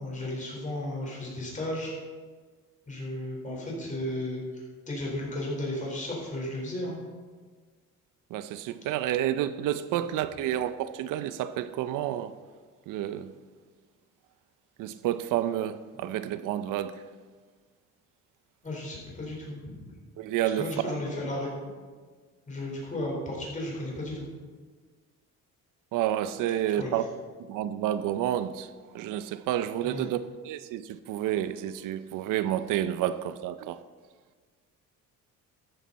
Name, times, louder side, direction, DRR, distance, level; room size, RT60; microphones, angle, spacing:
voice 1, 0.0-1.9 2.9-7.0 18.6-19.9 20.5-21.5 22.5-24.3 26.7-26.9 29.8-30.0, left 1 dB, 25° left, 4.3 m, -34 dB
voice 2, 8.3-12.3 12.9-13.3 14.8-17.0 20.2-21.0 25.9-27.0 27.4-33.8, right 11 dB, 85° right, 0.7 m, -30 dB
14.0 x 10.0 x 4.2 m
cardioid pair, 140°, 32 cm